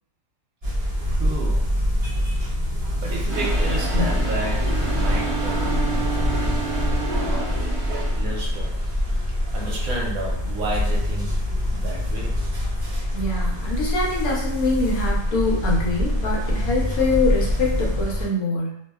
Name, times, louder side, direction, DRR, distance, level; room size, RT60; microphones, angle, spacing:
sound 1, 0.6-18.3, left 1 dB, 50° right, 0.4 m, -24 dB
voice 1, 1.1-1.9 2.7-6.6 7.0-7.6 7.9-11.3 11.7-12.4, right 2 dB, 70° right, -3 dB, 1.0 m, -33 dB
Toilet flush, 3.3-8.5, right 2 dB, ahead, 0.7 m, -32 dB
Bowed string instrument, 4.7-7.7, right 5 dB, 55° left, 0.8 m, -31 dB
voice 2, 13.1-18.8, left 2 dB, 75° left, -3 dB, 1.1 m, -24 dB
2.7 x 2.1 x 2.2 m, 0.75 s
omnidirectional pair, 1.6 m